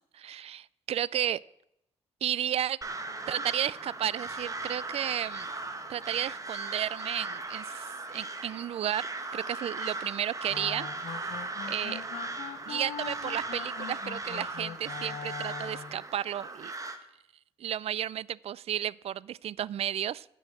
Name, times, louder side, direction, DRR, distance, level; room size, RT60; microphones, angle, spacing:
voice 1, 0.0-1.4 2.2-2.8 3.3-5.5 5.9-12.0 12.7-16.7 17.6-20.3, right 10 dB, 60° right, 23 dB, 0.4 m, -33 dB
Crow, 2.8-17.0, right 3 dB, 30° right, 1.4 m, -38 dB
sound 1, 10.5-16.0, left 8 dB, 65° left, 0.6 m, -41 dB
9.6 x 6.2 x 8.7 m, 0.79 s
cardioid pair, 70°, 12 cm